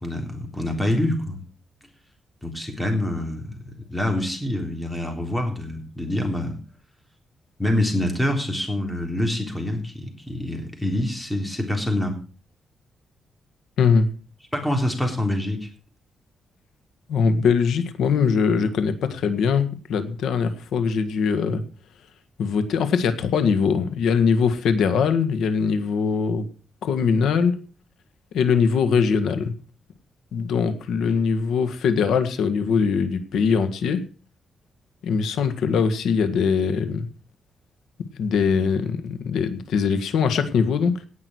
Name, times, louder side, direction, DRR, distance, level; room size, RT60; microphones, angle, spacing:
voice 1, 0.0-1.4 2.4-3.6 3.9-6.6 7.6-12.2 14.5-15.7, left 1 dB, 10° left, 3 dB, 3.6 m, -26 dB
voice 2, 17.1-21.6 22.4-26.5 26.8-27.6 28.3-29.5 30.3-34.0 35.0-37.1 38.2-41.0, left 6 dB, 90° left, 9 dB, 1.7 m, -22 dB
18.0 x 6.2 x 6.3 m, 0.37 s
cardioid pair, 140°, 0 cm